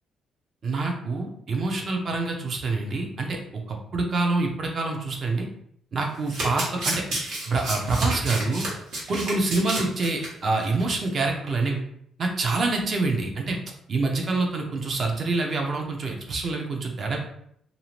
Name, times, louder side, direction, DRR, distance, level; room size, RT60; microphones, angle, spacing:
voice 1, 0.6-5.5 5.9-7.0 7.5-8.7 9.1-11.8 12.2-13.6 13.9-17.2, right 3 dB, 50° right, 2 dB, 0.6 m, -26 dB
Domestic sounds home sounds, 6.0-10.3 10.6-10.8 11.1-11.2, right 1 dB, 80° right, 1.2 m, -31 dB
2.7 x 2.4 x 3.1 m, 0.70 s
cardioid pair, 90°, 0 cm